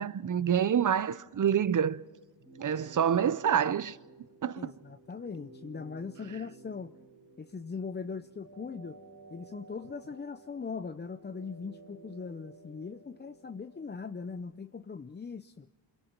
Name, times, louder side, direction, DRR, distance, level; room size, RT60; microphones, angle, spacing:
voice 1, 0.0-2.0 2.6-4.0 4.4-4.7, right 8 dB, 45° right, 0.7 m, -27 dB
sound 1, 2.4-14.4, right 3 dB, 70° right, 4.8 m, -54 dB
voice 2, 4.6-6.9 7.4-9.0 9.3-15.7, left 5 dB, 25° left, 0.6 m, -40 dB
29.5 x 22.0 x 4.5 m
cardioid pair, 90°, 45 cm